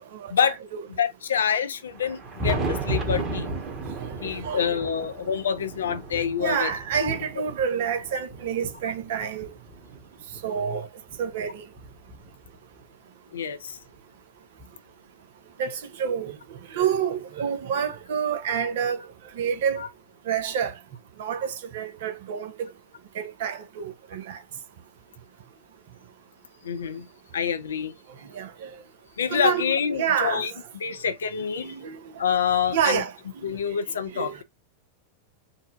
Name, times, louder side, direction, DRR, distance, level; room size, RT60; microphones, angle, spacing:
voice 1, 0.1-0.8 4.0-4.8 6.4-9.5 10.4-10.9 11.2-11.6 15.6-16.3 16.7-19.1 19.4-19.8 20.3-20.7 21.2-22.5 23.1-24.4 28.3-28.7 29.3-29.7 29.9-30.5 31.6-32.0 32.7-33.1 33.4-33.6 34.1-34.4, right 7 dB, 55° right, 0.8 m, -28 dB
voice 2, 0.9-3.5 4.2-6.7 7.0-7.1 13.3-13.8 18.5-18.7 19.8-19.9 26.6-27.1 27.3-27.9 29.2-30.5 30.8-31.7 32.2-33.0 33.4-34.4, left 7 dB, 65° left, 0.5 m, -27 dB
Thunder, 1.9-10.4 11.1-12.8 13.9-14.0 14.6-14.7 16.6-16.7 18.0-18.1 19.7-19.8, right 2 dB, 25° right, 1.4 m, -34 dB
4.0 x 2.2 x 2.6 m
figure-of-eight pair, 90°, 0 cm